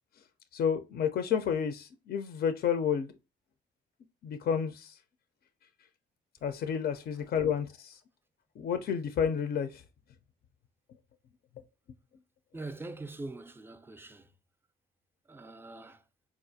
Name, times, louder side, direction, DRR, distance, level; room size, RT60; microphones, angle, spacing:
voice 1, 0.5-3.1 4.2-5.0 6.4-8.0 8.6-9.8, left 7 dB, 55° left, 0.4 m, -30 dB
voice 2, 12.5-14.3 15.3-16.0, right 2 dB, 10° right, 0.4 m, -43 dB
4.1 x 2.4 x 2.6 m
cardioid pair, 90°, 20 cm